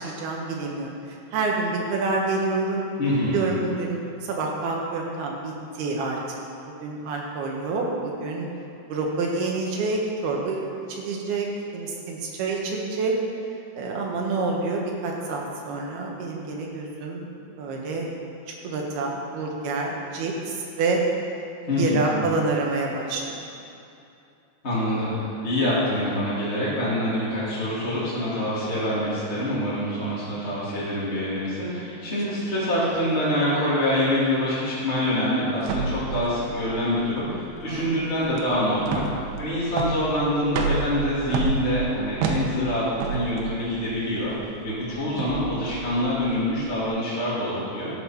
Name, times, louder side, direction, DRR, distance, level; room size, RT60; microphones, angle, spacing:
voice 1, 0.0-2.8 3.3-6.4 6.7-8.5 8.9-11.5 11.7-13.2 13.7-18.1 18.6-21.0 21.8-23.4 37.7-38.1, right 3 dB, 70° right, -1 dB, 3.2 m, -28 dB
voice 2, 3.0-3.4 21.7-22.1 24.6-39.0 39.4-44.3 44.6-47.9, left 1 dB, 20° left, -11 dB, 2.1 m, -25 dB
sound 1, 35.6-46.8, right 4 dB, 85° right, 3.0 m, -31 dB
13.0 x 6.6 x 5.7 m, 2.7 s
omnidirectional pair, 4.8 m